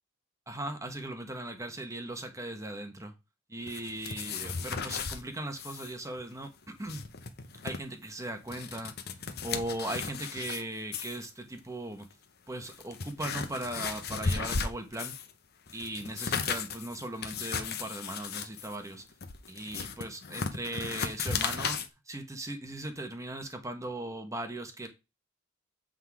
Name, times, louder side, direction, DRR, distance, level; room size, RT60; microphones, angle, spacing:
voice 1, 0.5-3.1 3.5-7.0 7.6-8.9 9.4-12.1 12.5-15.1 15.7-19.0 19.5-24.9, right 1 dB, 15° right, 1.1 m, -38 dB
sound 1, 3.7-5.2 5.6-5.9 6.2-6.3 6.7-7.8 8.3-10.6 10.9-11.3 12.0-12.1 12.6-15.3 15.7-21.9, left 5 dB, 50° left, 0.9 m, -35 dB
7.9 x 3.8 x 4.8 m
head